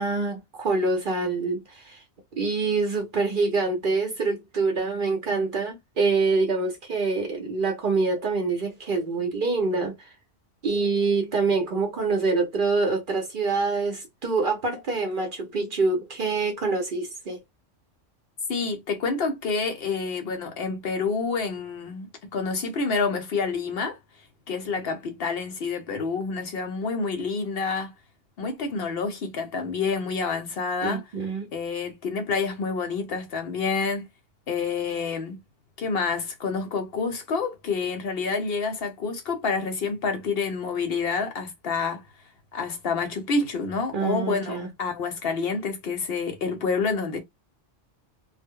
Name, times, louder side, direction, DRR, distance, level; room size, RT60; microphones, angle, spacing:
voice 1, 0.0-2.0 2.4-10.1 10.6-17.4 30.8-31.5 43.9-44.7, right 3 dB, 55° right, 0.6 m, -25 dB
voice 2, 18.5-22.1 22.3-24.0 24.5-27.9 28.4-31.0 31.5-34.0 34.5-35.4 35.8-42.0 42.5-47.2, left 4 dB, 60° left, 0.7 m, -28 dB
2.1 x 2.0 x 3.5 m
omnidirectional pair, 1.3 m